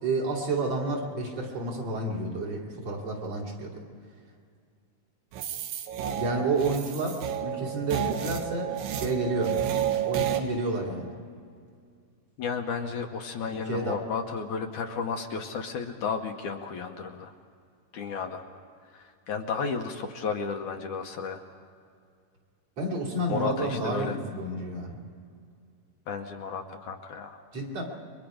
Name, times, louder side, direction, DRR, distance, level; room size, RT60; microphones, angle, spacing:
voice 1, 0.0-3.8 6.2-9.6 10.0-11.2 13.5-13.9 22.8-25.0 27.5-27.8, right 2 dB, 50° right, -2 dB, 3.8 m, -30 dB
sound 1, 5.3-10.4, right 9 dB, 80° right, 2.8 m, -31 dB
voice 2, 12.4-17.3 17.9-18.4 18.9-21.4 23.3-24.2 26.1-27.4, left 5 dB, 70° left, 4 dB, 2.3 m, -33 dB
29.5 x 23.0 x 5.1 m, 2.3 s
omnidirectional pair, 3.9 m